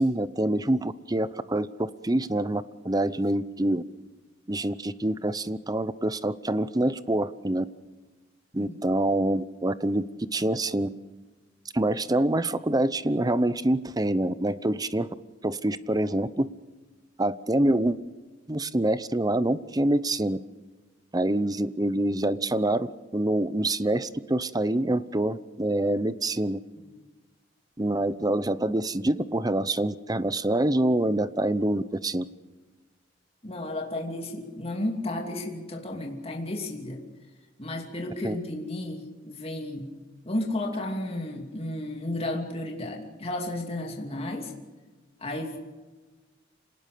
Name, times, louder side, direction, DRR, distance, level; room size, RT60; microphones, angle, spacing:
voice 1, 0.0-3.8 4.5-7.6 8.5-10.1 10.3-10.9 11.7-15.1 15.4-16.5 17.2-18.0 18.5-20.4 21.1-26.6 27.8-32.2 38.2-38.4, right 1 dB, 20° right, 15 dB, 0.8 m, -26 dB
voice 2, 33.4-37.0 37.6-39.9 40.2-44.5 45.2-45.6, left 1 dB, 30° left, 1 dB, 2.7 m, -33 dB
27.0 x 18.5 x 6.8 m, 1.2 s
head